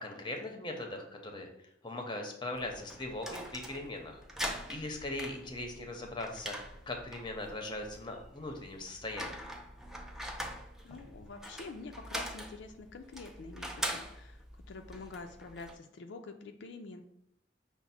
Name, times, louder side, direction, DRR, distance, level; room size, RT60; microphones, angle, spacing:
voice 1, 0.0-1.5 1.8-4.2 4.7-6.6 6.9-9.4, left 2 dB, 25° left, 3 dB, 0.7 m, -40 dB
sound 1, 2.5-15.8, equal, 5° right, 0.4 m, -43 dB
voice 2, 10.6-17.0, left 3 dB, 70° left, 5 dB, 0.4 m, -47 dB
5.8 x 2.0 x 4.1 m, 0.73 s
head